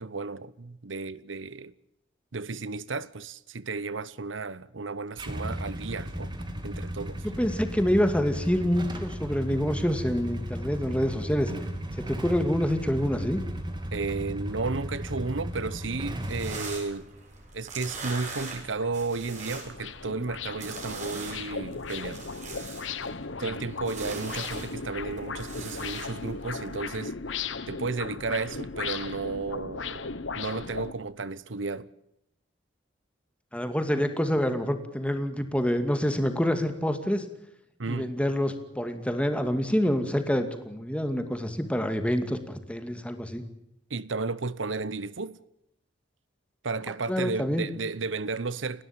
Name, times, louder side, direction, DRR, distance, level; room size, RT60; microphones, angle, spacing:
voice 1, 0.0-1.7 2.3-6.3 6.6-7.2 13.9-17.1 17.5-22.3 23.4-27.2 27.7-30.1 30.4-31.9 37.8-38.1 43.9-45.4 46.6-48.8, right 3 dB, 90° right, 0.9 m, -33 dB
Motorcycle / Engine starting / Idling, 5.2-16.6, equal, 25° right, 2.7 m, -35 dB
voice 2, 7.4-11.5 11.9-13.4 23.4-23.5 33.5-37.3 37.9-43.4 47.1-47.7, equal, 5° left, 2.4 m, -27 dB
sound 1, 16.2-27.0, right 3 dB, 40° right, 7.2 m, -42 dB
sound 2, 18.0-18.1 18.6-30.9, left 5 dB, 90° left, 1.3 m, -37 dB
30.0 x 13.0 x 9.0 m
head